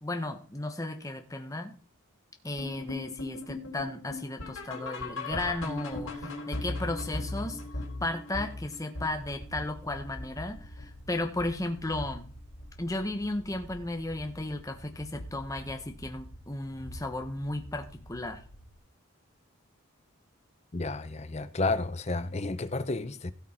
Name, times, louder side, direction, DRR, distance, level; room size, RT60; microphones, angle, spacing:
voice 1, 0.0-1.7 2.4-7.6 8.0-12.2 12.8-18.4, left 2 dB, 15° left, 1.1 m, -34 dB
sound 1, 2.6-11.7 12.0-12.3 12.6-12.7 13.2-13.3 13.8-13.9, left 2 dB, 85° left, 3.9 m, -39 dB
sound 2, 9.0-18.8, equal, 70° left, 1.6 m, -47 dB
voice 2, 20.7-23.3, left 3 dB, 30° left, 0.6 m, -31 dB
16.5 x 6.2 x 4.4 m
head